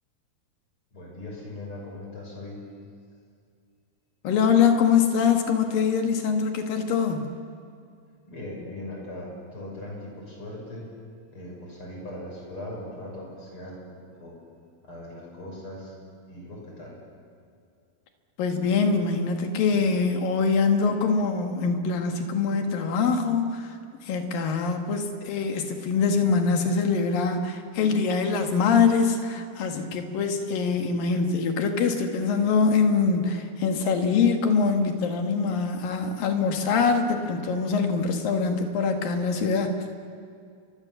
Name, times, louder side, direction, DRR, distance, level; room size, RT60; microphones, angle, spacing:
voice 1, 0.9-2.6 8.3-10.9 11.3-13.9 14.2-14.4 14.8-16.0 16.3-17.0, left 1 dB, 30° left, -1 dB, 7.0 m, -39 dB
voice 2, 4.2-7.3 18.4-23.7 24.0-39.8, left 5 dB, 65° left, 5 dB, 3.4 m, -24 dB
29.5 x 24.5 x 7.2 m, 2.3 s
omnidirectional pair, 4.5 m